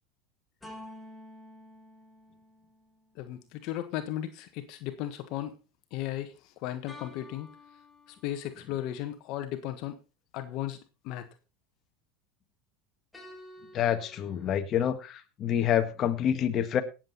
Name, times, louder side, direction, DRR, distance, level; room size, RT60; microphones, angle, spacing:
sound 1, 0.6-3.1 6.9-8.7 13.1-14.5, left 1 dB, 10° left, 6.1 m, -50 dB
voice 1, 3.2-5.6 5.9-6.3 6.6-7.5 8.2-10.0 10.3-10.8 11.0-11.2, left 13 dB, 60° left, 9 dB, 1.4 m, -35 dB
voice 2, 13.7-16.8, left 9 dB, 40° left, 8 dB, 1.6 m, -27 dB
18.0 x 7.8 x 4.1 m, 0.29 s
supercardioid pair, 110°, 0 cm